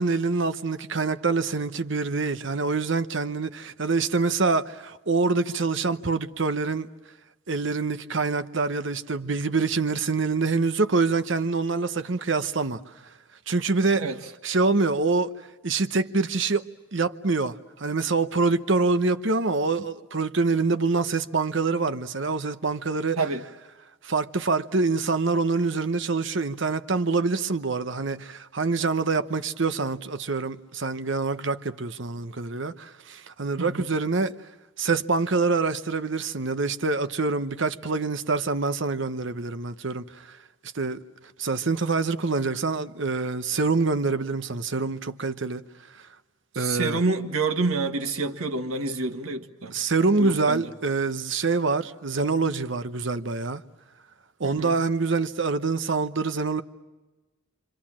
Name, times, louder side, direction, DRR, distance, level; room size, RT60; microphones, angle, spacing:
voice 1, 0.0-6.9 7.5-12.8 13.5-14.1 14.4-15.3 15.6-23.2 24.0-34.3 34.8-40.4 40.7-41.0 41.4-45.6 46.5-47.0 49.7-53.6 54.4-56.6, right 4 dB, 55° right, 0.9 m, -25 dB
voice 2, 33.6-33.9 46.5-49.8 50.2-50.6 54.4-54.8, right 3 dB, 85° right, 1.6 m, -28 dB
29.0 x 25.5 x 7.4 m
head